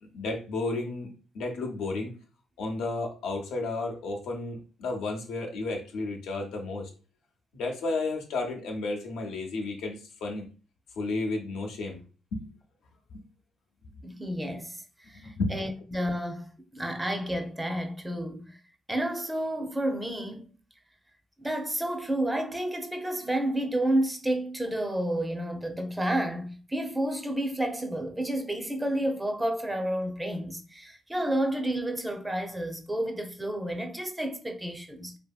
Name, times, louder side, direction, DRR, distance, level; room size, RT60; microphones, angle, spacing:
voice 1, 0.0-2.1 2.6-6.9 7.5-10.4 11.0-12.0 12.3-12.5 13.1-13.2 15.1-15.6, left 3 dB, 85° left, 0.7 m, -32 dB
voice 2, 14.0-18.6 18.9-20.5 21.4-35.2, right 1 dB, 10° right, 0.5 m, -30 dB
2.8 x 2.7 x 2.3 m
cardioid pair, 90°, 0 cm